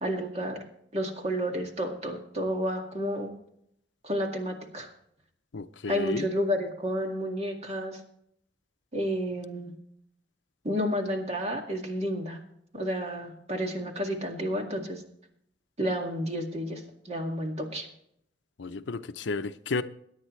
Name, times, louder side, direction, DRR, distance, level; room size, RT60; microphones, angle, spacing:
voice 1, 0.0-0.6 0.9-3.3 4.0-4.9 5.9-8.0 8.9-9.7 10.6-12.4 12.7-15.0 15.8-17.9, equal, 35° right, 2.1 m, -31 dB
voice 2, 5.5-6.3 18.6-19.8, left 3 dB, 85° left, 0.6 m, -32 dB
22.0 x 9.9 x 3.2 m
head